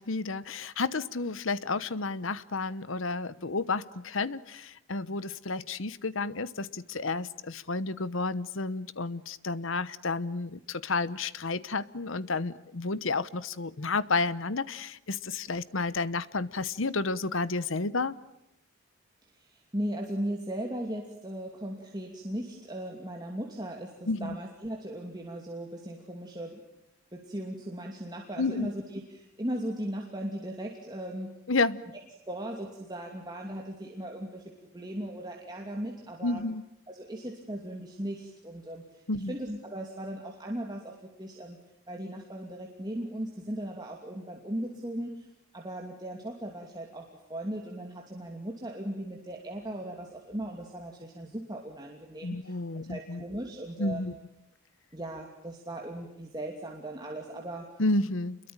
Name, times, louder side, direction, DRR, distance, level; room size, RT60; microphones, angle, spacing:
voice 1, 0.0-18.1 24.1-24.4 28.4-28.7 31.5-31.8 36.2-36.6 39.1-39.3 52.2-53.2 53.8-54.1 57.8-58.4, left 3 dB, 65° left, 17 dB, 1.0 m, -31 dB
voice 2, 19.2-26.6 27.1-31.4 32.3-36.4 36.9-41.6 41.9-54.1 54.9-57.8, right 1 dB, 20° right, 1 dB, 2.8 m, -38 dB
29.0 x 22.5 x 8.9 m, 0.86 s
head